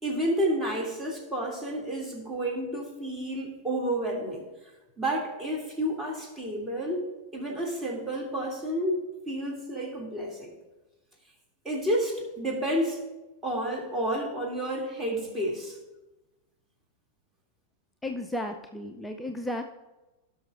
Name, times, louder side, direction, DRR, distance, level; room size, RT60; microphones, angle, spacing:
voice 1, 0.0-4.5 5.0-7.1 7.3-10.6 11.6-13.0 13.4-15.8, right 1 dB, 15° right, -1 dB, 2.4 m, -30 dB
voice 2, 18.0-19.6, left 1 dB, 5° left, 4 dB, 0.5 m, -34 dB
17.0 x 6.3 x 2.4 m, 1.1 s
figure-of-eight pair, 90°, 0 cm